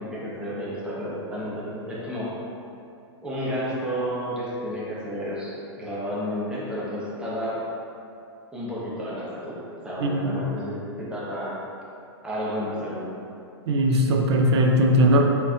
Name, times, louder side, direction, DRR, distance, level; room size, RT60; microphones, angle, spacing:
voice 1, 0.0-2.4 3.2-7.6 8.5-11.6 12.2-13.1, equal, 5° right, -8 dB, 1.0 m, -31 dB
voice 2, 10.0-10.4 13.7-15.2, equal, 65° right, 2 dB, 0.6 m, -19 dB
4.4 x 4.0 x 2.4 m, 2.6 s
hypercardioid pair, 110°, 15 cm